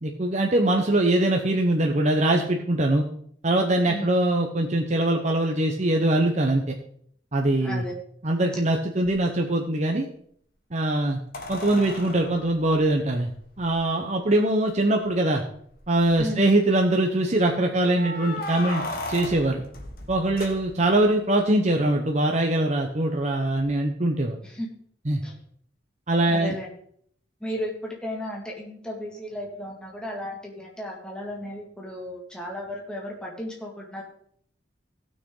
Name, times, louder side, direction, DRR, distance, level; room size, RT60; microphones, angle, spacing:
voice 1, 0.0-3.0 3.4-6.7 7.3-7.8 8.2-10.1 10.7-11.2 11.5-13.3 13.6-15.4 15.9-18.8 19.1-19.6 20.1-24.4 25.1-25.2 26.1-26.5, right 1 dB, 35° right, 2 dB, 0.9 m, -22 dB
voice 2, 7.6-7.9 16.2-16.4 24.4-24.7 25.2-25.4 26.3-26.7 27.4-34.0, equal, 5° left, -2 dB, 2.0 m, -34 dB
sound 1, 9.0-9.1 11.3-13.7 14.7-14.8 15.1-15.2 15.7-16.2 17.9-21.1 23.6-23.7, left 2 dB, 50° left, 1.7 m, -36 dB
17.0 x 6.5 x 3.8 m, 0.64 s
head